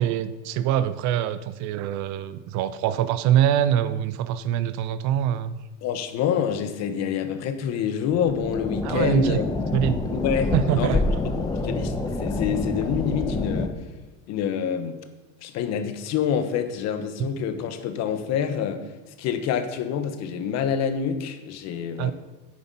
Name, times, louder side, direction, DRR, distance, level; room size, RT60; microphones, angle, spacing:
voice 1, 0.0-5.6 8.8-9.4 9.7-10.1 10.5-11.0 22.0-22.1, right 10 dB, 55° right, 14 dB, 0.6 m, -24 dB
voice 2, 5.8-9.5 10.1-11.0 11.2-13.7 14.3-15.0 15.4-18.8 19.2-22.1, left 7 dB, 50° left, 9 dB, 1.2 m, -27 dB
sound 1, 8.2-13.7, left 2 dB, 10° left, 0.9 m, -27 dB
9.7 x 8.5 x 5.5 m, 1.1 s
cardioid pair, 145°, 35 cm